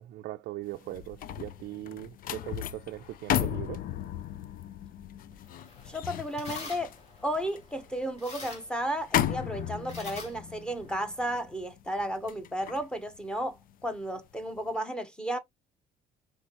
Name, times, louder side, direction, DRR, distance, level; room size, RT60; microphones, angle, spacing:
voice 1, 0.0-3.9, right 15 dB, 75° right, 0.4 m, -40 dB
sound 1, 0.7-14.0 14.4-14.7, left 10 dB, 55° left, 0.5 m, -35 dB
sound 2, 5.3-11.4, left 3 dB, 40° left, 2.6 m, -47 dB
voice 2, 5.9-6.9 7.2-15.4, equal, 5° left, 1.0 m, -33 dB
5.4 x 3.3 x 3.0 m
cardioid pair, 110°, 17 cm